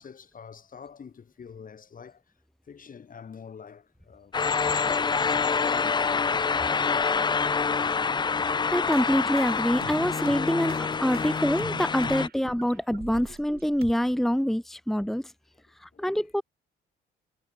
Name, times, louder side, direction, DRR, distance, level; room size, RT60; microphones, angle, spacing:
voice 1, 0.0-2.2 2.7-5.0 5.4-6.0 11.1-11.2 12.7-12.8 15.9-16.3, left 6 dB, 45° left, 3.2 m, -46 dB
sound 1, 4.3-12.3, left 5 dB, 25° left, 0.4 m, -26 dB
voice 2, 8.7-15.3 15.8-16.4, equal, ahead, 1.4 m, -26 dB
sound 2, 8.9-13.9, right 7 dB, 50° right, 5.0 m, -43 dB
cardioid pair, 90°, 20 cm